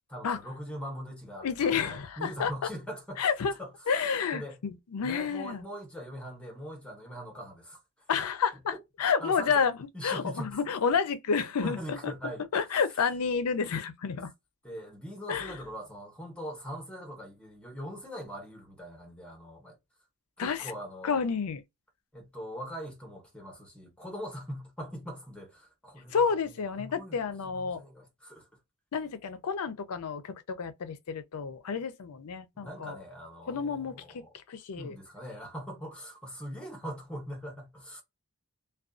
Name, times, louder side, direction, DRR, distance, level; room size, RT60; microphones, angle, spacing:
voice 1, 0.1-3.2 3.6-3.7 4.3-4.6 5.0-7.8 9.2-9.6 9.9-10.6 11.6-12.4 14.1-14.2 14.6-19.8 20.4-21.2 22.1-27.2 27.5-28.5 32.5-34.3 34.8-38.0, equal, 5° left, 1.0 m, -41 dB
voice 2, 1.4-2.5 3.2-3.5 3.9-5.6 8.1-8.7 9.0-9.8 10.0-12.1 12.5-14.3 15.3-15.5 20.4-20.7 21.0-21.6 26.1-27.8 28.9-33.0 33.5-35.0, left 6 dB, 80° left, 0.5 m, -30 dB
2.4 x 2.2 x 2.4 m
head